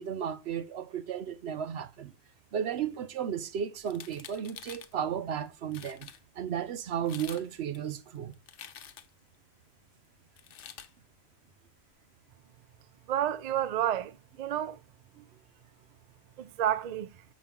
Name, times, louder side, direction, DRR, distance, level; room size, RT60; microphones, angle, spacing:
voice 1, 0.0-2.1 2.5-6.1 6.4-8.4 15.2-15.3, right 8 dB, 75° right, 0.9 m, -34 dB
sound 1, 3.8-4.9 5.5-5.6 5.7-6.2 6.9-7.5 7.7-9.2 10.4-10.9, left 8 dB, 60° left, 0.8 m, -47 dB
voice 2, 13.1-14.8 16.4-17.1, right 11 dB, 55° right, 0.5 m, -30 dB
7.2 x 5.1 x 3.5 m
omnidirectional pair, 1.1 m